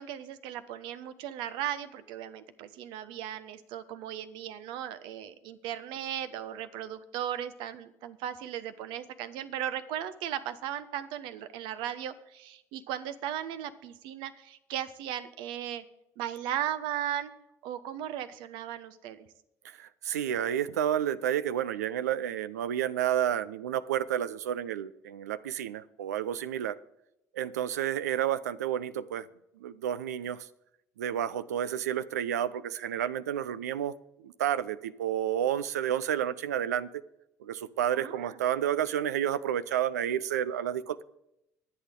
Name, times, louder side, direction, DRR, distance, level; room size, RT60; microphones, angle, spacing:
voice 1, 0.0-15.8 16.2-17.3 17.6-19.3 37.9-38.4, right 11 dB, 70° right, 12 dB, 1.1 m, -37 dB
voice 2, 19.6-26.8 27.3-29.3 29.6-30.5 31.0-33.9 34.2-36.9 37.4-41.0, right 10 dB, 90° right, 15 dB, 0.6 m, -30 dB
23.5 x 8.5 x 3.8 m, 0.82 s
hypercardioid pair, 65°, 9 cm